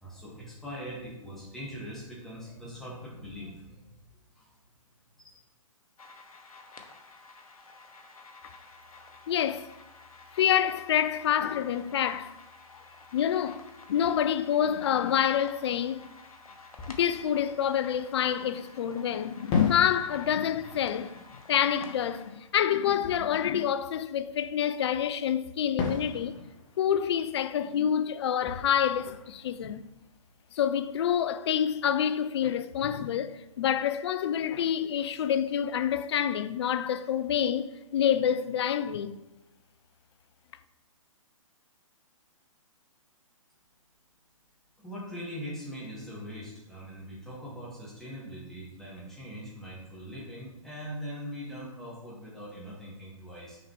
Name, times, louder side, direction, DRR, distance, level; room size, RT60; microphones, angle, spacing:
voice 1, 0.0-3.8 4.3-4.5 5.2-5.4 44.8-53.6, equal, ahead, 1.9 m, -41 dB
sound 1, 6.0-22.5, left 3 dB, 85° left, 0.9 m, -52 dB
voice 2, 9.3-9.7 10.3-12.4 13.1-16.1 16.9-21.2 21.5-26.4 26.8-29.9 30.5-39.2, left 9 dB, 50° left, 0.4 m, -27 dB
Fireworks, 16.7-18.7 19.5-24.8 25.8-30.5, left 3 dB, 25° left, 1.2 m, -40 dB
6.2 x 4.8 x 3.2 m
hypercardioid pair, 130°, 18 cm